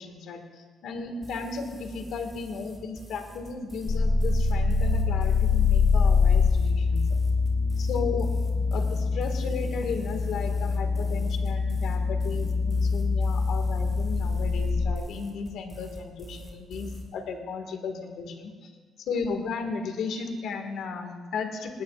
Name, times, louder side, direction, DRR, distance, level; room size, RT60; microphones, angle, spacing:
voice 1, 0.0-7.1 7.8-8.3 8.7-18.7 19.0-21.8, left 5 dB, 75° left, 5 dB, 1.8 m, -35 dB
sound 1, 1.2-17.0, equal, 5° right, 4.5 m, -43 dB
sound 2, 3.9-15.0, left 4 dB, 60° left, 1.3 m, -24 dB
20.0 x 18.5 x 2.5 m, 1.5 s
cardioid pair, 90°, 0 cm